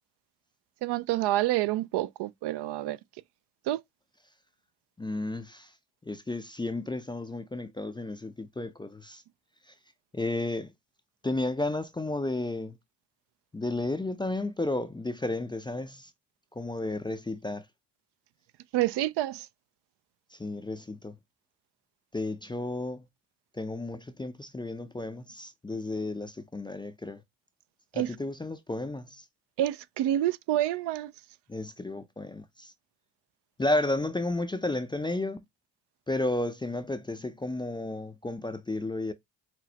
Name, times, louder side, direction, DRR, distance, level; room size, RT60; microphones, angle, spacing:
voice 1, 0.8-3.0 3.7-3.8 18.7-19.5 28.0-28.1 29.6-31.1, right 14 dB, 60° right, 0.5 m, -28 dB
voice 2, 5.0-5.7 6.0-9.2 9.7-9.8 10.1-10.7 11.2-12.8 13.5-16.1 16.5-17.7 20.3-21.2 22.1-23.1 23.5-27.2 27.9-29.3 31.5-32.7 33.6-35.4 36.1-39.1, left 2 dB, 10° left, 0.4 m, -32 dB
6.0 x 2.1 x 2.7 m
supercardioid pair, 75°, 46 cm